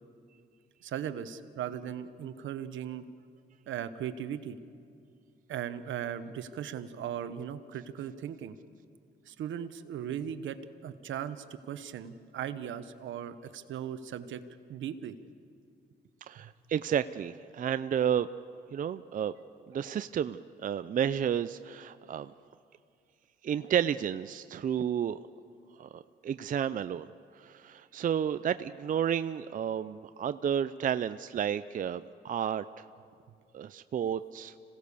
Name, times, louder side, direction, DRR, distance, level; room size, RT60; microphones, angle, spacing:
voice 1, 0.8-3.0 3.7-4.6 5.5-8.6 9.3-10.6 10.8-14.4 14.7-15.1, right 9 dB, 75° right, 11 dB, 1.1 m, -38 dB
voice 2, 16.3-18.3 18.7-19.3 19.7-22.3 23.4-25.2 25.8-27.1 27.4-32.8 33.5-34.5, right 9 dB, 45° right, 12 dB, 0.5 m, -31 dB
26.5 x 17.5 x 6.9 m, 2.3 s
cardioid pair, 90°, 20 cm